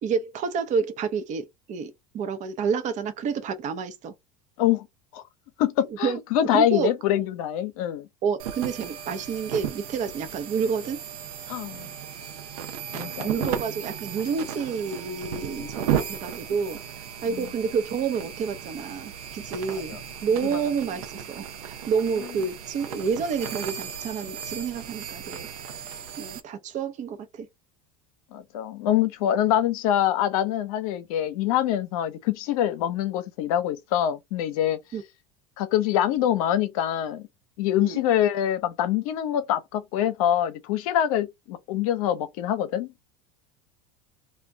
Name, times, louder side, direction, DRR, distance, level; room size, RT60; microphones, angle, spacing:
voice 1, 0.0-4.1 6.0-6.2 6.5-6.9 8.2-11.0 13.2-16.8 17.2-25.5 26.2-27.5 34.9-35.0 37.8-38.0, right 6 dB, 40° right, 0.7 m, -29 dB
voice 2, 5.6-8.1 11.5-11.9 12.9-13.5 15.6-16.2 16.5-16.6 17.3-17.5 19.7-20.0 20.5-20.6 28.3-34.8 35.6-37.2 37.6-42.9, left 11 dB, 70° left, 0.6 m, -25 dB
sound 1, 8.4-26.4, right 9 dB, 80° right, 0.6 m, -35 dB
2.5 x 2.2 x 3.2 m
hypercardioid pair, 90°, 19 cm